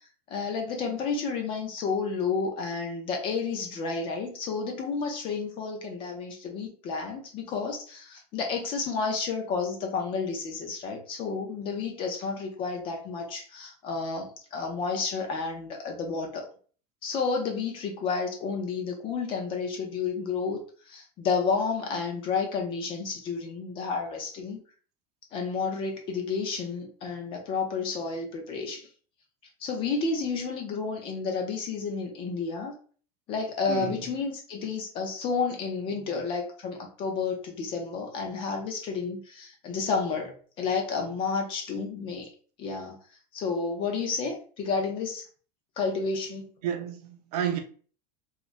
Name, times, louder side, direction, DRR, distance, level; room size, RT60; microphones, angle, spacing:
voice 1, 0.3-16.5 17.0-24.6 25.3-28.9 29.6-32.7 33.3-42.3 42.6-43.0 43.3-45.2 45.8-46.4, left 5 dB, 25° left, 0.5 m, -31 dB
voice 2, 33.7-34.0 46.6-47.6, right 9 dB, 70° right, 0.7 m, -31 dB
3.1 x 2.4 x 2.4 m
supercardioid pair, 170°, 21 cm